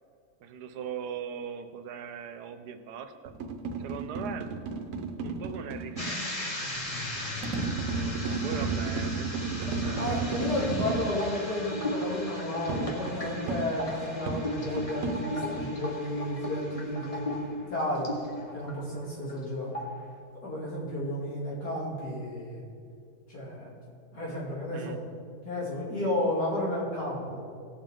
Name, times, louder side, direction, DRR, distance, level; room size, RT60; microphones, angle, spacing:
voice 1, 0.4-3.3 3.8-4.6 5.2-6.3 7.9-10.9 24.7-25.0, right 7 dB, 90° right, 9 dB, 1.3 m, -40 dB
sound 1, 3.3-6.1 7.4-11.2 12.7-15.7, right 4 dB, 60° right, 1.1 m, -33 dB
sound 2, 6.0-18.7 19.1-19.4 19.7-20.1, left 1 dB, 25° left, 1.3 m, -36 dB
voice 2, 10.0-17.2 17.7-18.1 18.5-19.7 20.4-22.6 23.3-23.8 24.1-25.0 25.4-27.4, left 1 dB, 80° left, -6 dB, 3.3 m, -32 dB
18.0 x 7.2 x 3.7 m, 2.3 s
omnidirectional pair, 1.7 m